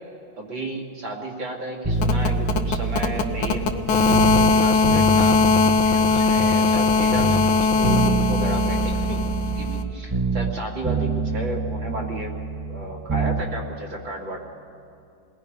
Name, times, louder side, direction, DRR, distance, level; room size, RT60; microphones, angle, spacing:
voice 1, 0.4-5.4 6.0-9.2 9.5-12.3 12.7-14.4, right 1 dB, 90° right, -1 dB, 3.3 m, -33 dB
sound 1, 1.8-4.5 4.8-6.9 7.1-10.6 10.8-13.5 13.7-13.8, right 4 dB, 15° right, 1.3 m, -26 dB
sound 2, 1.9-9.8, left 4 dB, 85° left, 1.8 m, -20 dB
29.5 x 19.5 x 5.3 m, 2.5 s
omnidirectional pair, 2.0 m